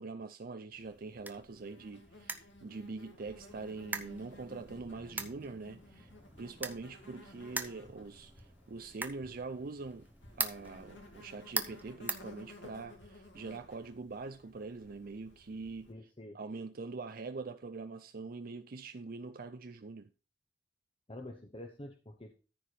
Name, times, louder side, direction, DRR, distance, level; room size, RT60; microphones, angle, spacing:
voice 1, 0.0-6.1 6.4-15.9 16.3-20.1, right 3 dB, 55° right, 0.5 m, -44 dB
Insect, 0.7-15.9, left 1 dB, 85° left, 2.1 m, -56 dB
sound 1, 0.7-13.0, right 3 dB, 10° right, 0.9 m, -44 dB
voice 2, 15.9-16.4 21.1-22.3, left 1 dB, 30° left, 1.1 m, -47 dB
14.0 x 4.7 x 5.0 m
head